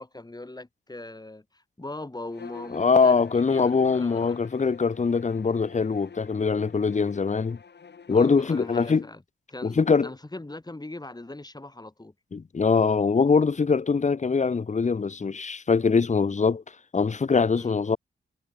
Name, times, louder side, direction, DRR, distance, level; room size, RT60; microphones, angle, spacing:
voice 1, 0.0-4.5 8.1-9.2 9.5-12.1 17.6-17.8, left 2 dB, 20° left, 4.0 m, -40 dB
Bowed string instrument, 2.3-9.1, left 6 dB, 55° left, 2.8 m, -46 dB
voice 2, 2.7-7.6 8.1-9.0 9.6-10.1 12.3-16.6 16.9-18.0, left 5 dB, 35° left, 1.0 m, -23 dB
cardioid pair, 65°, 20 cm